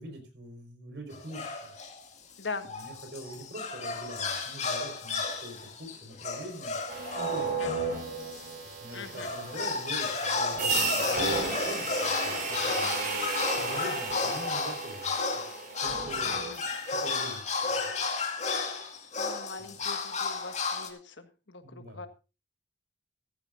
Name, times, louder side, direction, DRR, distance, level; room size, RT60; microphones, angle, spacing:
voice 1, 0.0-1.7 2.7-6.8 7.1-7.9 8.6-13.2 13.6-15.4 15.8-16.4 16.9-17.4 17.7-17.9 19.6-19.8 21.6-22.1, right 1 dB, 70° right, 5 dB, 4.8 m, -44 dB
sound 1, 1.1-2.0 2.4-8.5 8.9-20.9, left 4 dB, 40° left, 2.3 m, -33 dB
sound 2, 6.9-17.0, right 4 dB, 50° right, 4.4 m, -34 dB
voice 2, 8.9-9.3 12.2-12.7 14.2-14.3 16.2-16.6 19.2-22.1, left 4 dB, 85° left, 8 dB, 1.7 m, -42 dB
15.5 x 14.5 x 2.6 m, 0.31 s
head